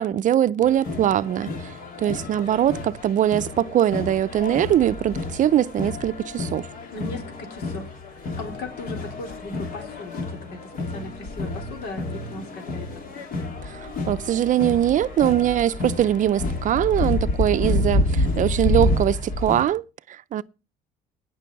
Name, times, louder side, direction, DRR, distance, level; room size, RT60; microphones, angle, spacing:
voice 1, 0.0-6.7 13.6-20.4, right 11 dB, 50° right, 0.5 m, -22 dB
sound 1, 0.6-19.7, left 2 dB, 55° left, 3.0 m, -29 dB
voice 2, 6.9-13.1 17.5-17.8, left 2 dB, 80° left, 3.5 m, -38 dB
18.5 x 6.2 x 4.6 m
cardioid pair, 110°, 17 cm